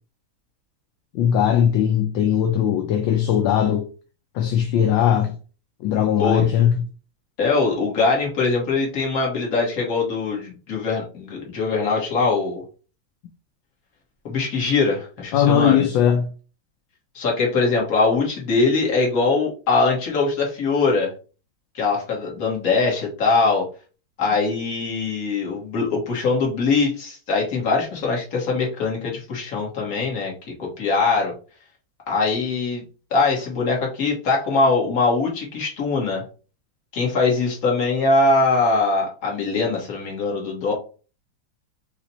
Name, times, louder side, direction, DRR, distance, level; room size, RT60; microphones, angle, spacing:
voice 1, 1.1-3.9 4.3-5.4 5.8-6.7 15.3-16.3, left 9 dB, 75° left, 1.2 m, -19 dB
voice 2, 6.2-6.5 7.4-12.6 14.2-15.9 17.1-21.1 21.7-23.7 24.2-30.3 30.6-31.3 32.1-32.8 33.1-36.2 36.9-40.7, left 3 dB, 45° left, 1.7 m, -22 dB
4.3 x 2.5 x 4.0 m
omnidirectional pair, 2.3 m